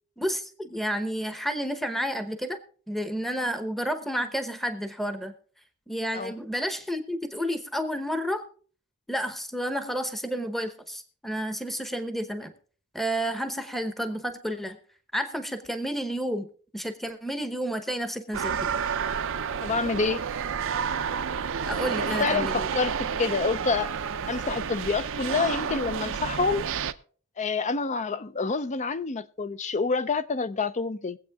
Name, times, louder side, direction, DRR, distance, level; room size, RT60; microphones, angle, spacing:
voice 1, 0.2-2.6 2.9-5.3 5.9-8.4 9.1-12.5 12.9-14.8 15.1-18.7 21.7-22.7, equal, ahead, 0.9 m, -31 dB
sound 1, 18.3-26.9, right 7 dB, 60° right, 0.6 m, -30 dB
voice 2, 19.6-20.2 22.0-23.9 24.3-26.6 27.4-31.2, left 4 dB, 35° left, 0.6 m, -27 dB
22.5 x 8.1 x 3.5 m
head